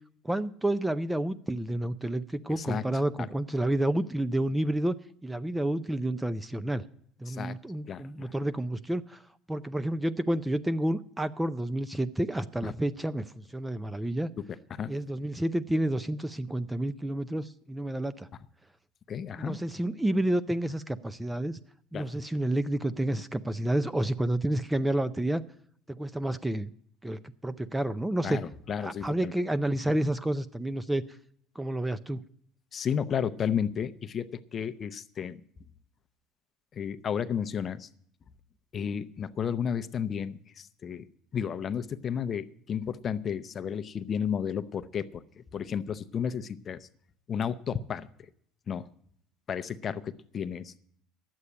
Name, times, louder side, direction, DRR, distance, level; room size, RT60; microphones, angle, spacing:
voice 1, 0.2-5.0 5.2-6.8 7.2-9.2 9.5-14.3 14.9-18.3 19.4-21.6 21.9-25.4 25.9-26.7 27.0-28.4 28.8-31.0 31.6-32.2, right 1 dB, 5° right, 14 dB, 0.5 m, -30 dB
voice 2, 7.9-8.3 12.6-12.7 14.7-14.9 19.1-19.6 21.9-22.1 28.2-29.3 32.7-35.4 36.7-37.9 38.7-41.0 41.3-45.2 45.5-46.8 47.3-48.1 48.7-48.9 49.5-50.7, left 7 dB, 35° left, 13 dB, 0.7 m, -32 dB
11.0 x 8.1 x 8.5 m, 0.64 s
cardioid pair, 120°, 0 cm